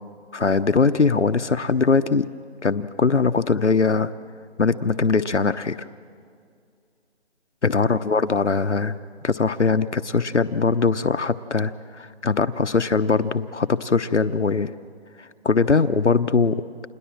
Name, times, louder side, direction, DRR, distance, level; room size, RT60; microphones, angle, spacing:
voice 1, 0.3-2.3 2.6-4.1 4.6-5.8 7.6-9.0 9.2-14.7 15.2-16.6, left 4 dB, 85° left, 11 dB, 0.9 m, -21 dB
28.0 x 21.0 x 7.6 m, 2.2 s
figure-of-eight pair, 155°, 34 cm